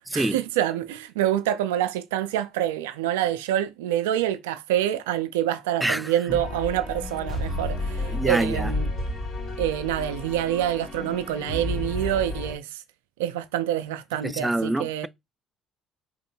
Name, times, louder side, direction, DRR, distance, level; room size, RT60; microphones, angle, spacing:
voice 1, 0.1-8.9 9.6-12.8 13.2-15.1, right 11 dB, 90° right, 0.5 m, -26 dB
voice 2, 5.8-6.1 8.1-8.7 14.2-15.1, right 1 dB, 10° right, 0.4 m, -26 dB
sound 1, 6.3-12.6, left 1 dB, 55° left, 2.5 m, -31 dB
3.7 x 2.6 x 4.5 m
hypercardioid pair, 65°, 0 cm